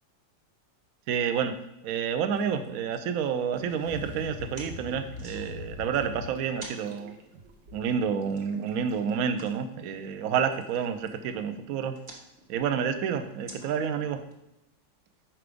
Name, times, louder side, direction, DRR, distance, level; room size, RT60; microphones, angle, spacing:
voice 1, 1.1-1.6 1.8-7.1 7.7-12.0 12.5-14.2, right 7 dB, 65° right, 9 dB, 0.9 m, -29 dB
sound 1, 2.3-14.3, right 1 dB, 25° right, 1.1 m, -52 dB
sound 2, 3.6-6.3, left 5 dB, 50° left, 0.8 m, -41 dB
sound 3, 3.8-9.0, right 2 dB, 85° right, 1.6 m, -53 dB
6.0 x 4.8 x 5.1 m, 0.89 s
omnidirectional pair, 1.9 m